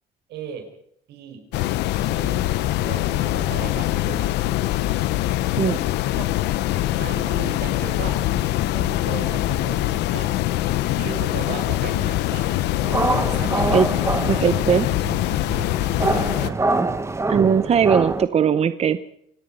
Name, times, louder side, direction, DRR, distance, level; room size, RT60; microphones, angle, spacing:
voice 1, 0.3-0.7 1.1-1.4 1.9-2.4 2.8-4.3 6.1-6.3 6.8-8.2 8.7-10.3 11.0-12.5 13.3-13.7 14.1-15.4 16.4-16.6, right 7 dB, 75° right, 6 dB, 5.2 m, -36 dB
sound 1, 1.5-16.5, left 15 dB, 85° left, 0.9 m, -23 dB
sound 2, 12.8-18.2, right 3 dB, 15° right, 1.5 m, -25 dB
voice 2, 14.3-14.9 17.3-19.0, right 7 dB, 40° right, 13 dB, 0.8 m, -19 dB
27.0 x 17.5 x 5.5 m, 0.72 s
cardioid pair, 110°, 17 cm